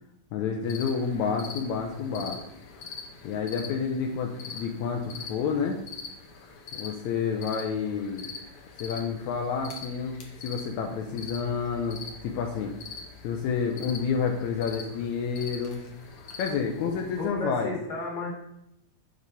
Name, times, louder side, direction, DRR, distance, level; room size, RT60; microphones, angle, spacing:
voice 1, 0.3-2.4 3.2-5.8 6.7-8.3 8.8-10.2 10.4-12.7 13.2-15.8 16.4-17.7, left 6 dB, 80° left, 2 dB, 2.0 m, -29 dB
sound 1, 0.6-17.3, left 4 dB, 60° left, 1.7 m, -44 dB
voice 2, 16.8-18.3, left 1 dB, 35° left, -7 dB, 2.6 m, -35 dB
7.6 x 5.3 x 4.1 m, 0.81 s
omnidirectional pair, 3.4 m